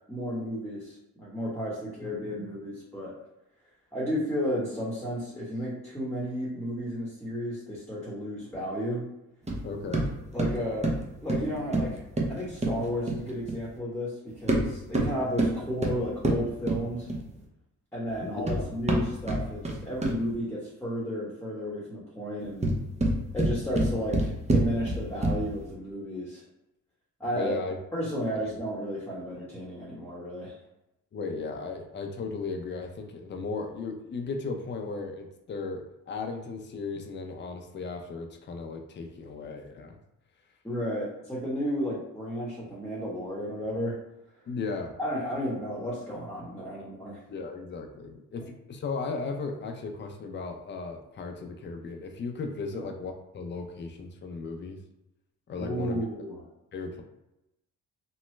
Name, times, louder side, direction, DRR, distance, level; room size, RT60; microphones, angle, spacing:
voice 1, 0.1-3.1 3.9-9.0 10.3-10.9 11.2-12.0 12.3-17.1 17.9-22.6 23.3-26.4 27.2-27.5 27.9-30.5 40.6-44.0 45.0-47.2 52.7-52.9 55.6-56.4, equal, 5° left, -6 dB, 1.1 m, -33 dB
sound 1, 9.5-13.7 14.3-17.4 18.1-20.4 22.4-25.6, right 1 dB, 20° right, 0.7 m, -28 dB
voice 2, 9.6-10.1 18.2-18.3 18.6-18.7 27.3-27.8 31.1-40.0 44.5-44.9 47.3-54.8 55.5-56.0 56.7-57.0, left 4 dB, 30° left, 3 dB, 0.5 m, -36 dB
3.0 x 2.2 x 3.1 m, 0.90 s
cardioid pair, 75°, 35 cm